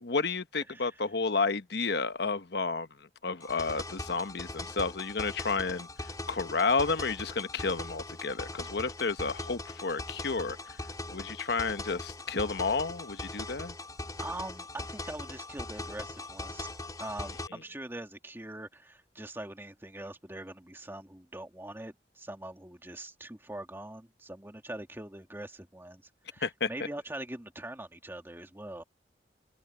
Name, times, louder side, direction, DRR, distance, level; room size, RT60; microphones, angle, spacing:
voice 1, 0.0-2.9 3.2-10.8 11.1-13.7 26.4-26.7, left 4 dB, 65° left, 1.1 m, -31 dB
voice 2, 0.7-1.0 14.2-16.7 17.0-28.8, right 1 dB, 15° right, 2.0 m, -43 dB
sound 1, 3.4-17.5, left 2 dB, 20° left, 2.7 m, -41 dB
head